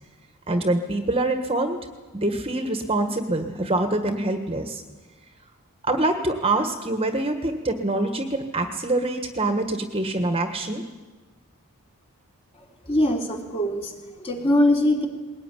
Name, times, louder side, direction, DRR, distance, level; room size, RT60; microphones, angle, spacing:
voice 1, 0.5-1.8 2.1-4.8 5.8-10.8, right 2 dB, 25° right, 6 dB, 1.6 m, -25 dB
voice 2, 12.8-15.1, left 1 dB, 25° left, 1 dB, 3.3 m, -22 dB
21.0 x 18.5 x 10.0 m, 1.2 s
head